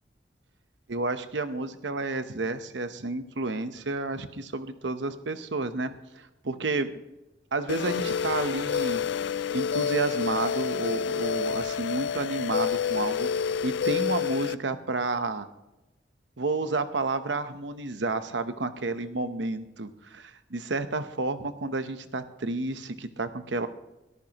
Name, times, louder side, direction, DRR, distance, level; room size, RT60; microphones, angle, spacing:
voice 1, 0.9-6.9 7.5-9.0 9.5-13.3 13.6-15.5 16.4-23.7, right 3 dB, 90° right, 10 dB, 1.0 m, -31 dB
sound 1, 7.7-14.5, left 7 dB, 75° left, 0.4 m, -28 dB
21.5 x 14.0 x 3.0 m, 1.0 s
head